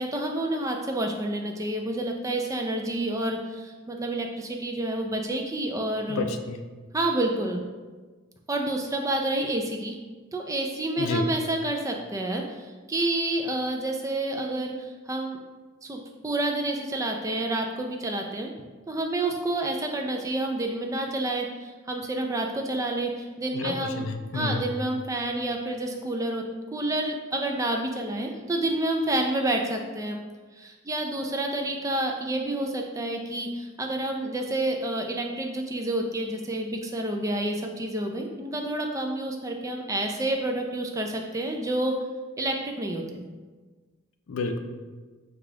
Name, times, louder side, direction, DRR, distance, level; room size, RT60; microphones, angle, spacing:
voice 1, 0.0-6.3 6.9-7.6 8.5-10.0 10.3-15.4 15.8-18.5 18.9-24.0 24.3-26.4 26.7-30.2 30.6-41.9 42.4-43.2, right 1 dB, 15° right, 2 dB, 0.3 m, -29 dB
voice 2, 6.1-6.6 11.0-11.2 23.5-24.6 44.3-44.6, left 3 dB, 60° left, 6 dB, 0.4 m, -30 dB
5.0 x 2.4 x 3.6 m, 1.4 s
head